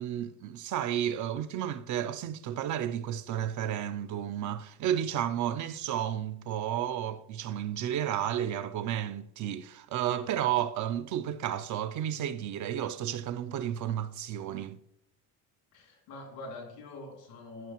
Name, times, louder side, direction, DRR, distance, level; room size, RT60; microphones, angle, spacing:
voice 1, 0.0-14.8, right 10 dB, 45° right, 0.5 m, -32 dB
voice 2, 15.7-17.7, left 2 dB, 80° left, 2.8 m, -44 dB
12.5 x 5.6 x 2.9 m
supercardioid pair, 90°, 40 cm